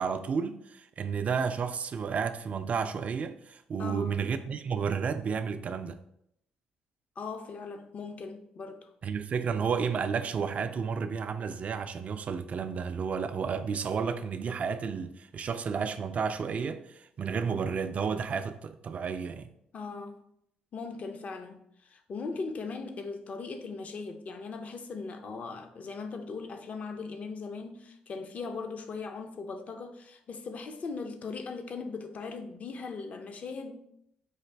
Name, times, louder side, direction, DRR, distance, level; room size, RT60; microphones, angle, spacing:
voice 1, 0.0-6.0 9.0-19.5, right 6 dB, 50° right, 0.4 m, -32 dB
voice 2, 3.8-4.3 7.2-8.9 19.7-20.2 20.7-33.8, left 4 dB, 50° left, 0.5 m, -39 dB
4.8 x 2.5 x 3.3 m
supercardioid pair, 65°, 3 cm